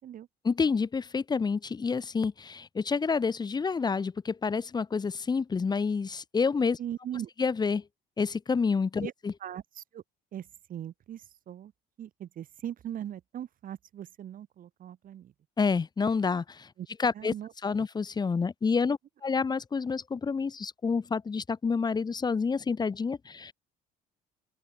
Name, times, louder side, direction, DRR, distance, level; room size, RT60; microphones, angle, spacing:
voice 1, 0.4-6.8 7.4-7.8 8.2-9.3 15.6-16.7 17.0-17.3 17.6-23.5, left 5 dB, 25° left, 1.0 m, -28 dB
voice 2, 6.8-7.3 9.0-9.1 9.4-10.0 10.3-11.7 12.0-15.3 16.8-16.9 17.1-17.5, right 10 dB, 55° right, 2.5 m, -40 dB
open air
cardioid pair, 110°, 17 cm